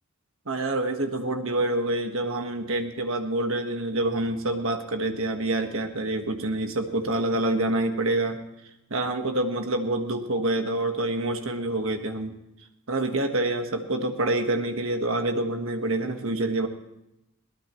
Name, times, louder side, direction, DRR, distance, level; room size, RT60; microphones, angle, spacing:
voice 1, 0.5-8.4 8.9-12.4 12.9-16.7, right 2 dB, 70° right, 6 dB, 1.5 m, -27 dB
21.5 x 18.5 x 3.1 m, 0.87 s
head